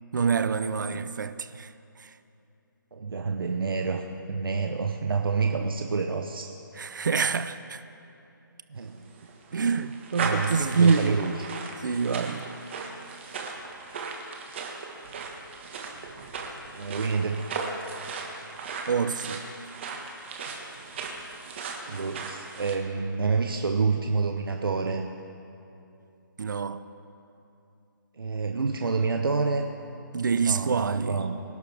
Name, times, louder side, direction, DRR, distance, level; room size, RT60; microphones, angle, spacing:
voice 1, 0.1-1.7 6.8-7.8 9.5-11.2 11.8-12.5 18.9-19.4 26.4-26.8 30.1-31.2, right 5 dB, 60° right, 0.7 m, -26 dB
voice 2, 2.9-4.0 4.3-6.5 8.7-9.0 10.2-11.4 16.7-17.5 21.9-25.1 28.2-29.7 30.4-31.3, right 4 dB, 85° right, 1.0 m, -28 dB
sound 1, 8.9-22.7, right 4 dB, 30° right, 1.6 m, -37 dB
24.5 x 11.5 x 3.5 m
hypercardioid pair, 165°, 12 cm